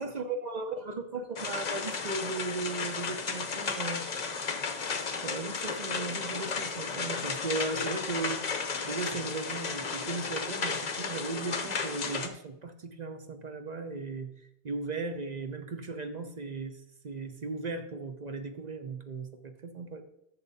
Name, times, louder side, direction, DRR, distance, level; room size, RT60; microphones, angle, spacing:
voice 1, 0.0-4.1 4.8-8.4 8.8-14.3 14.6-20.0, right 3 dB, 45° right, 7 dB, 0.8 m, -37 dB
sound 1, 1.4-12.3, left 5 dB, 45° left, 0.8 m, -34 dB
10.5 x 6.9 x 4.1 m, 0.78 s
omnidirectional pair, 1.1 m